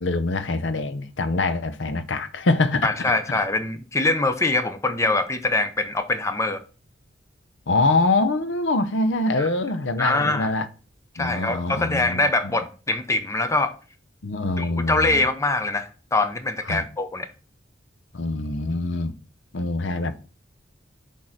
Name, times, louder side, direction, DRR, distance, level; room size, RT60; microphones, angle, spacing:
voice 1, 0.0-3.0 7.7-10.7 11.2-12.5 14.2-15.2 16.7-16.8 18.1-19.1 19.5-20.2, left 2 dB, 75° left, 0.7 m, -24 dB
voice 2, 2.8-6.6 9.4-9.5 10.0-10.5 11.1-13.7 14.6-17.3, left 2 dB, 15° left, 0.6 m, -23 dB
6.4 x 3.7 x 5.9 m
head